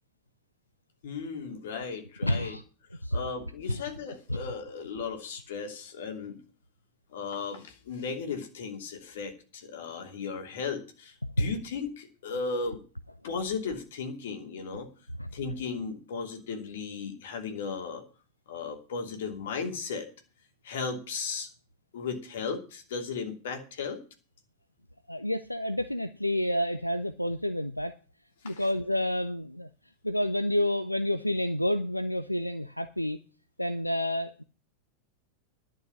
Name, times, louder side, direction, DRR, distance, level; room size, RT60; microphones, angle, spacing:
voice 1, 1.0-2.5 3.1-6.4 7.1-12.8 13.2-14.9 15.3-18.0 18.5-20.1 20.6-21.5 21.9-24.0 28.4-28.7, left 5 dB, 60° left, 5 dB, 2.8 m, -36 dB
voice 2, 2.2-2.6 3.0-3.2 3.7-3.8 11.4-11.5 15.2-15.3 25.1-28.0 28.4-29.7 30.0-33.2 33.6-34.4, left 1 dB, 90° left, 11 dB, 0.6 m, -29 dB
11.5 x 6.5 x 9.5 m, 0.36 s
figure-of-eight pair, 90°, 0 cm